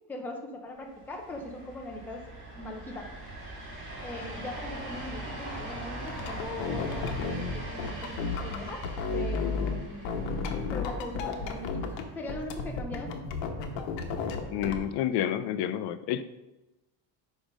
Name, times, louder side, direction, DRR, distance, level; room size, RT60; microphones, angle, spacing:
voice 1, 0.1-2.3 2.5-3.1 4.0-10.1 10.7-13.2, left 2 dB, 5° left, 2 dB, 0.4 m, -40 dB
sound 1, 0.8-12.8, right 1 dB, 25° right, 2.6 m, -42 dB
sound 2, 6.1-9.8 10.0-12.0 12.3-14.8, left 4 dB, 90° left, 1.0 m, -33 dB
voice 2, 14.5-16.2, left 10 dB, 65° left, 13 dB, 0.5 m, -29 dB
5.2 x 5.2 x 5.1 m, 1.0 s
cardioid pair, 175°, 44 cm